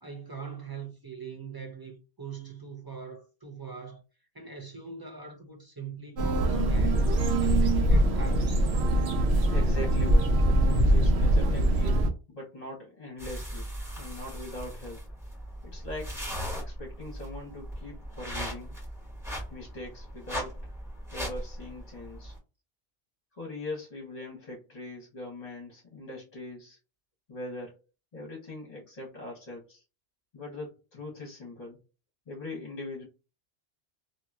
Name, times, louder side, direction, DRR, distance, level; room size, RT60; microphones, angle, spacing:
voice 1, 0.0-4.0 4.3-7.1 7.4-8.7, right 5 dB, 30° right, 0.5 m, -42 dB
sound 1, 6.2-12.1, right 1 dB, 80° right, 0.9 m, -23 dB
voice 2, 9.5-13.7 14.0-15.0 15.6-16.2 16.5-18.7 19.5-20.7 21.1-22.3 23.4-26.8 27.3-27.8 28.1-29.8 30.3-31.8 32.3-33.0, left 2 dB, 40° left, 1.1 m, -41 dB
sound 2, 13.2-22.4, equal, 5° right, 1.7 m, -38 dB
2.9 x 2.6 x 2.4 m
omnidirectional pair, 1.1 m